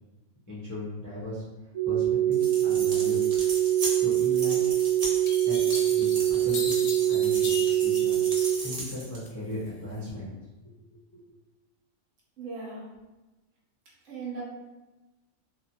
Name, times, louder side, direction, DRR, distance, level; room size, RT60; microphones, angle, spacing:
voice 1, 0.5-1.4 1.8-3.2 3.9-4.6 5.4-6.8 7.1-8.2 8.6-10.3 10.6-11.2, left 1 dB, 25° left, -10 dB, 0.4 m, -38 dB
sound 1, 1.7-8.5, right 12 dB, 85° right, 1.0 m, -24 dB
sound 2, 2.3-9.2, right 2 dB, 45° right, 0.5 m, -37 dB
sound 3, 4.5-4.6 5.2-8.9 9.3-10.0, left 4 dB, 70° left, 0.8 m, -39 dB
voice 2, 12.4-12.8 14.0-14.4, right 4 dB, 65° right, -5 dB, 1.0 m, -37 dB
2.5 x 2.5 x 2.8 m, 1.1 s
omnidirectional pair, 1.5 m